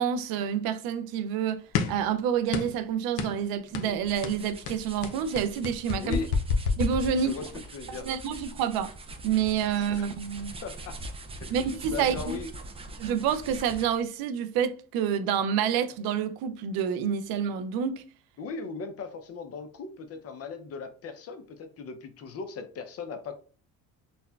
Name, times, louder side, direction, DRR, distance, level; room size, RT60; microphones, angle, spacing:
voice 1, 0.0-1.6 1.9-6.2 6.8-7.3 7.9-8.9 9.2-10.5 11.5-12.4 13.0-18.0, right 8 dB, 85° right, 0.5 m, -28 dB
sound 1, 1.7-2.1 2.5-2.8 3.2-3.4 3.7-4.0 4.2-7.6, left 5 dB, 90° left, 0.6 m, -29 dB
sound 2, 3.7-14.1, right 2 dB, 15° right, 0.3 m, -43 dB
voice 2, 6.0-6.3 7.1-8.1 9.8-10.0 10.6-11.0 11.4-11.6 11.9-12.5 18.4-23.3, left 4 dB, 45° left, 0.6 m, -38 dB
4.1 x 2.1 x 2.3 m
cardioid pair, 115°, 36 cm